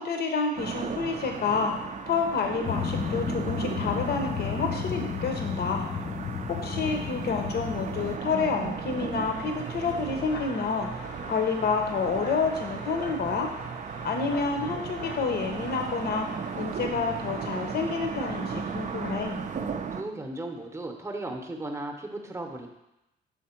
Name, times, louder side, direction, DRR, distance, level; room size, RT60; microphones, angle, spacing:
voice 1, 0.0-1.7 2.1-5.9 6.5-10.9 11.3-13.5 14.0-16.3 16.5-19.4, left 5 dB, 55° left, 3 dB, 0.7 m, -29 dB
sound 1, 0.6-20.0, right 6 dB, 40° right, 0.4 m, -36 dB
sound 2, 2.6-8.2, left 7 dB, 30° left, 0.4 m, -33 dB
sound 3, 9.3-19.5, left 4 dB, 85° left, 0.8 m, -46 dB
voice 2, 19.9-22.7, right 2 dB, 15° right, 3 dB, 0.8 m, -36 dB
6.5 x 3.3 x 4.4 m, 0.92 s
cardioid pair, 90°, 20 cm